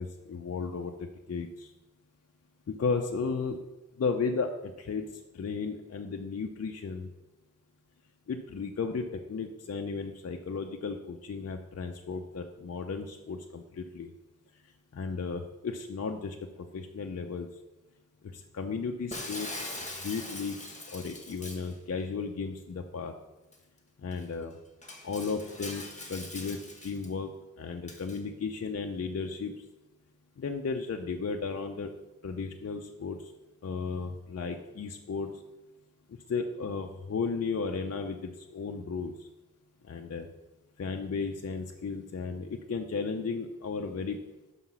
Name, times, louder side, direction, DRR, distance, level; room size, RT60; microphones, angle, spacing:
voice 1, 0.0-1.7 2.7-3.6 4.0-7.1 8.3-14.1 14.9-17.5 18.2-19.6 19.9-20.6 20.9-23.1 24.0-24.5 25.0-29.5 30.4-31.9 32.2-33.3 33.6-35.4 36.1-39.3 39.8-40.3 40.8-44.2, left 4 dB, 55° left, 4 dB, 0.6 m, -34 dB
Shatter, 19.1-21.7 23.5-23.6 24.1-24.2 24.8-27.1 27.9-28.2, left 2 dB, 25° left, 1.5 m, -42 dB
5.8 x 5.6 x 6.0 m, 1.1 s
wide cardioid pair, 65°, 31 cm